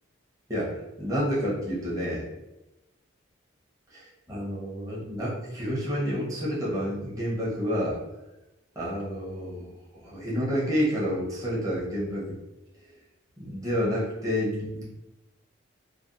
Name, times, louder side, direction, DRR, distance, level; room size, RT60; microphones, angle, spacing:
voice 1, 0.5-2.2 3.9-8.0 8.7-12.4 13.4-14.8, equal, 15° right, -7 dB, 0.9 m, -29 dB
3.3 x 2.2 x 2.5 m, 0.98 s
head